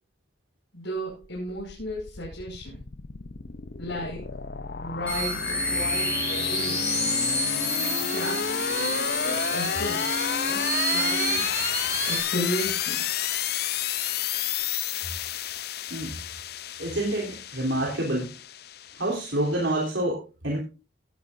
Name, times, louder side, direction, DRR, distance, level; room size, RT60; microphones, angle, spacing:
voice 1, 0.7-2.8 3.8-4.3 4.8-7.1 7.7-11.6 12.0-13.0, equal, 85° left, -5 dB, 5.6 m, -35 dB
sound 1, 1.1-19.8, left 9 dB, 55° left, 0.6 m, -31 dB
sound 2, 5.1-12.2, right 2 dB, 5° left, 4.9 m, -30 dB
Bowed string instrument, 5.4-11.5, left 1 dB, 25° right, 2.2 m, -38 dB
voice 2, 16.8-18.3 19.0-20.6, right 1 dB, 85° right, -3 dB, 3.6 m, -27 dB
18.0 x 11.0 x 2.6 m, 0.32 s
head